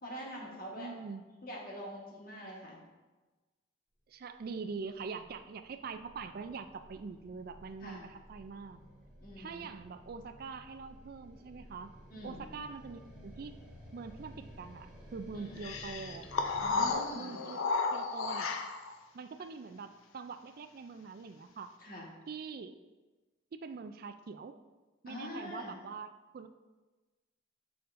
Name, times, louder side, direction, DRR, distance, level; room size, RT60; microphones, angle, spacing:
voice 1, 0.0-0.9 1.4-2.8 7.8-8.0 9.2-9.7 12.1-12.5 15.3-15.6 16.6-17.4 21.8-22.2 25.1-25.8, equal, 45° left, -3 dB, 1.4 m, -44 dB
voice 2, 0.8-1.2 4.1-8.8 9.4-11.9 12.2-13.6 13.9-16.2 16.7-17.6 17.9-18.6 19.1-21.7 22.3-22.7 23.5-24.5 25.0-26.5, right 5 dB, 45° right, 10 dB, 0.3 m, -44 dB
sound 1, 4.4-16.9, equal, 5° right, 1.5 m, -54 dB
sound 2, 15.6-19.0, left 4 dB, 80° left, 0.5 m, -33 dB
6.9 x 6.4 x 2.6 m, 1.2 s
head